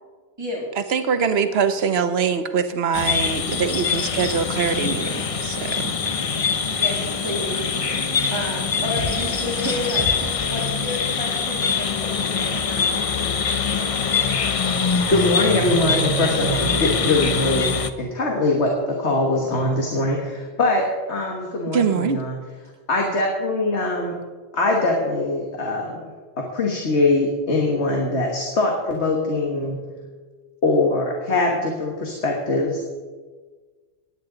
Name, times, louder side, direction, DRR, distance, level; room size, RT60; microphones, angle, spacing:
voice 1, 0.9-5.9 21.7-22.2, right 6 dB, 65° right, 10 dB, 1.0 m, -23 dB
sound 1, 2.9-17.9, left 6 dB, 40° left, 0.5 m, -24 dB
sound 2, 3.5-10.4, left 2 dB, 5° right, 4.9 m, -36 dB
voice 2, 7.2-7.7 8.0-13.1, equal, 25° right, -6 dB, 2.3 m, -31 dB
sound 3, 14.9-18.2, right 5 dB, 40° right, 1.3 m, -30 dB
voice 3, 15.1-17.7 18.0-22.3 22.9-24.2 24.5-26.0 26.4-29.8 30.6-32.8, left 2 dB, 75° left, 0 dB, 1.8 m, -22 dB
17.0 x 10.5 x 3.9 m, 1.4 s
omnidirectional pair, 1.2 m